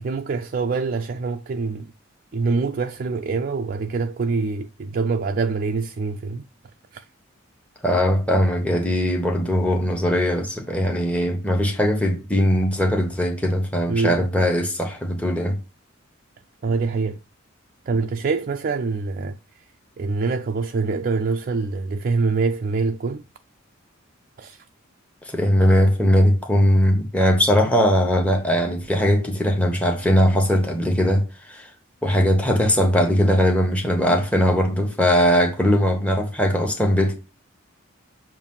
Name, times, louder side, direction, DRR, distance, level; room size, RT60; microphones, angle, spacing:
voice 1, 0.0-1.9 2.3-6.4 6.9-7.0 13.9-14.2 16.6-17.2 17.9-19.4 20.0-23.2 24.4-24.6, right 4 dB, 45° right, 0.4 m, -25 dB
voice 2, 7.8-15.6 25.3-31.7 32.0-37.1, equal, 5° left, 1.1 m, -20 dB
7.1 x 2.6 x 5.4 m
head